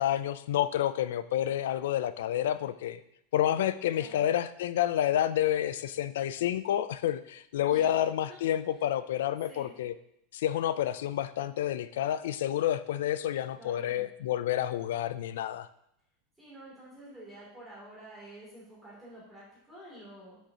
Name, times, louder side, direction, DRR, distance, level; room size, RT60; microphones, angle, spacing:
voice 1, 0.0-3.0 3.3-9.9 10.3-15.7, left 11 dB, 80° left, 15 dB, 0.4 m, -29 dB
voice 2, 13.6-14.1 16.4-20.4, right 1 dB, 5° right, -8 dB, 2.8 m, -49 dB
7.8 x 6.4 x 2.9 m, 0.76 s
supercardioid pair, 180°, 0 cm